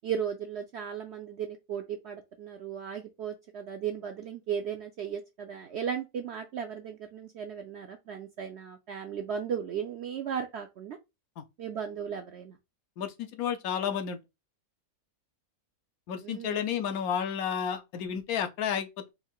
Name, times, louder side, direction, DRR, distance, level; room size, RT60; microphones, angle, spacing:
voice 1, 0.0-11.0 11.6-12.6 16.2-16.6, right 8 dB, 70° right, 0.6 m, -36 dB
voice 2, 13.0-14.2 16.1-19.1, left 8 dB, 75° left, 1.0 m, -31 dB
4.3 x 3.5 x 2.3 m
omnidirectional pair, 1.6 m